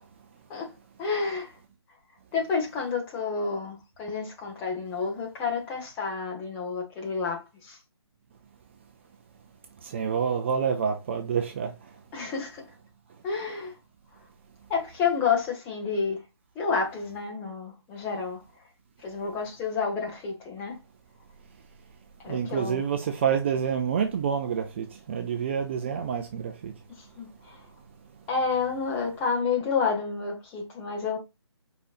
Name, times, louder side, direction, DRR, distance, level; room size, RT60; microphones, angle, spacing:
voice 1, 1.0-1.5 2.3-7.8 12.1-12.6 13.2-13.7 14.7-16.2 16.5-18.4 19.0-20.8 22.2-22.8 26.9-27.6 28.3-31.2, left 5 dB, 15° left, 1.2 m, -30 dB
voice 2, 9.8-11.7 22.3-26.7, right 7 dB, 25° right, 0.5 m, -28 dB
5.1 x 4.1 x 2.4 m
figure-of-eight pair, 155°, 15 cm